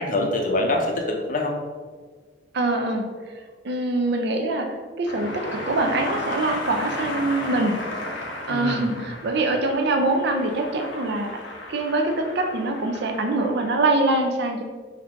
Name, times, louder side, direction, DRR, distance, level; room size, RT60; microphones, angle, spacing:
voice 1, 0.0-1.5 8.5-9.0, left 2 dB, 45° left, 2 dB, 0.7 m, -25 dB
voice 2, 2.5-3.1 3.6-4.7 5.0-7.7 8.5-11.4 11.7-14.6, right 2 dB, 65° right, 4 dB, 0.6 m, -24 dB
sound 1, 5.0-13.8, left 1 dB, 75° left, 0.9 m, -34 dB
4.1 x 2.6 x 4.4 m, 1.5 s
head